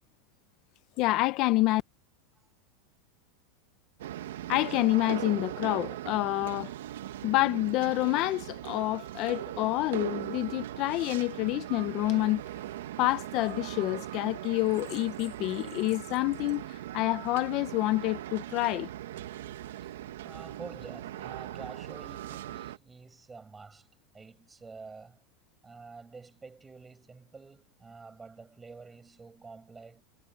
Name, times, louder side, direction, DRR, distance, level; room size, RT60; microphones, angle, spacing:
voice 1, 1.0-1.8 4.5-6.7 7.2-12.4 13.0-18.9, left 19 dB, 40° left, 0.7 m, -28 dB
sound 1, 4.0-22.8, right 13 dB, 90° right, 1.5 m, -40 dB
voice 2, 19.7-23.9 24.1-25.2 25.6-30.0, right 4 dB, 10° right, 6.6 m, -48 dB
supercardioid pair, 155°, 0 cm